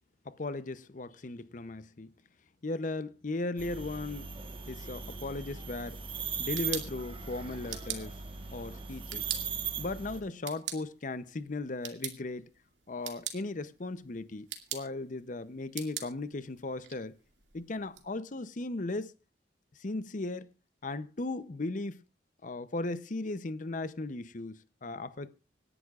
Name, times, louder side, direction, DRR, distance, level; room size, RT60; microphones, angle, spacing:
voice 1, 0.2-2.1 2.6-4.3 4.7-6.0 6.4-8.2 8.5-9.2 9.8-12.5 12.9-17.2 17.5-19.1 19.8-20.5 20.8-22.0 22.4-25.4, left 2 dB, 45° left, 0.7 m, -37 dB
sound 1, 3.6-10.2, right 6 dB, 30° right, 1.3 m, -39 dB
sound 2, 6.3-18.0, right 10 dB, 90° right, 2.2 m, -44 dB
26.0 x 11.0 x 2.4 m
head